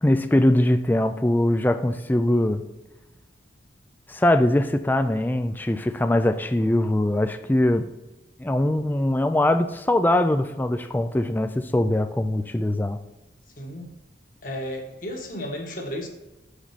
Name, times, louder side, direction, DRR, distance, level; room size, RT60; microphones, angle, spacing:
voice 1, 0.0-2.6 4.1-7.9 8.4-13.0, left 1 dB, 10° left, 8 dB, 0.3 m, -22 dB
voice 2, 13.6-13.9 14.4-16.1, equal, 50° left, 1 dB, 1.4 m, -33 dB
6.7 x 5.0 x 5.7 m, 1.0 s
head